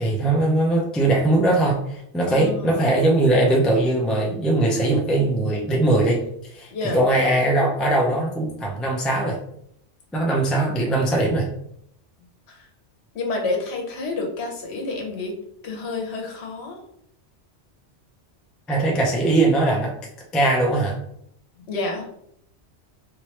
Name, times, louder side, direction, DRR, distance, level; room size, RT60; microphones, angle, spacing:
voice 1, 0.0-6.2 6.5-9.4 10.1-11.5 18.7-19.9 20.3-21.0, right 2 dB, ahead, -1 dB, 0.3 m, -20 dB
voice 2, 2.3-3.1 6.7-7.0 12.5-12.7 13.1-15.4 15.6-16.8 21.7-22.1, left 3 dB, 70° left, 2 dB, 1.0 m, -29 dB
3.2 x 2.9 x 3.1 m, 0.73 s
omnidirectional pair, 1.2 m